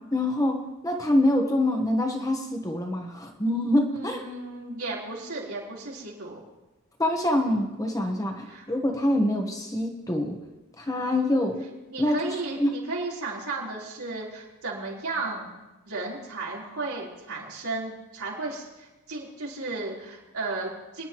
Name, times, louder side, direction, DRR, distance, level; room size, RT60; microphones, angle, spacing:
voice 1, 0.1-0.6 0.8-4.2 7.0-10.4 10.8-11.6 12.0-12.8, left 1 dB, 15° left, 3 dB, 1.1 m, -25 dB
voice 2, 3.9-6.4 8.5-8.7 11.9-15.5 15.9-21.1, right 3 dB, 85° right, -5 dB, 3.8 m, -34 dB
24.0 x 10.5 x 3.0 m, 1.1 s
head